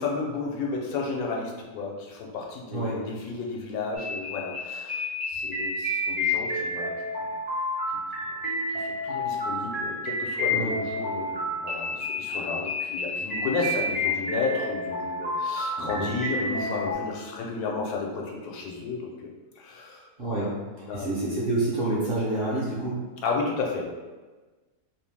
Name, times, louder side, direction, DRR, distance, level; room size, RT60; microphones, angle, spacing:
voice 1, 0.0-7.3 8.7-19.3 19.6-20.5 20.8-21.1 23.2-23.8, left 4 dB, 85° left, -1 dB, 1.1 m, -33 dB
sound 1, 3.9-16.9, left 1 dB, 15° right, 0.3 m, -30 dB
voice 2, 15.7-16.1 20.2-20.5 20.8-23.0, right 2 dB, 55° right, -7 dB, 0.6 m, -28 dB
2.6 x 2.0 x 3.1 m, 1.3 s
omnidirectional pair, 1.5 m